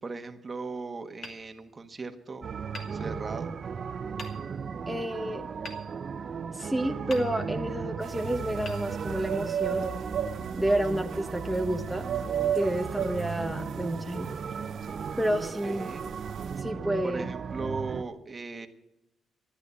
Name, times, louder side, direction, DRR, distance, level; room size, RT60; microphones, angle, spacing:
voice 1, 0.0-2.5 2.9-3.5 15.6-16.0 17.0-18.7, right 3 dB, 30° right, 7 dB, 1.3 m, -38 dB
Hammer, 1.2-2.2 2.7-3.6 4.2-4.8 5.6-6.6 7.1-7.8 8.6-9.6, left 2 dB, 55° left, 2.3 m, -47 dB
sound 1, 2.4-18.0, right 6 dB, 50° right, 0.6 m, -36 dB
voice 2, 4.9-5.5 6.5-9.9 10.5-12.0 12.5-14.3 15.2-15.9 16.6-17.2, right 1 dB, ahead, 3 dB, 0.9 m, -30 dB
sound 2, 8.0-16.6, right 8 dB, 65° right, 1.7 m, -36 dB
13.5 x 9.6 x 8.2 m, 0.91 s
cardioid pair, 90°, 0 cm